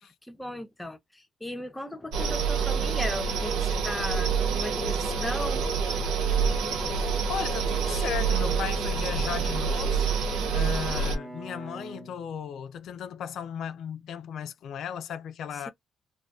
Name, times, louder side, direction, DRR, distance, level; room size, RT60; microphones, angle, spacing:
voice 1, 0.3-5.6, left 1 dB, 10° left, 0.6 m, -36 dB
sound 1, 2.1-11.2, right 6 dB, 90° right, 0.5 m, -27 dB
voice 2, 6.9-10.0 10.5-15.7, left 8 dB, 70° left, 0.4 m, -36 dB
Bowed string instrument, 8.5-12.9, right 2 dB, 25° right, 1.0 m, -46 dB
2.4 x 2.3 x 2.3 m
cardioid pair, 90°, 0 cm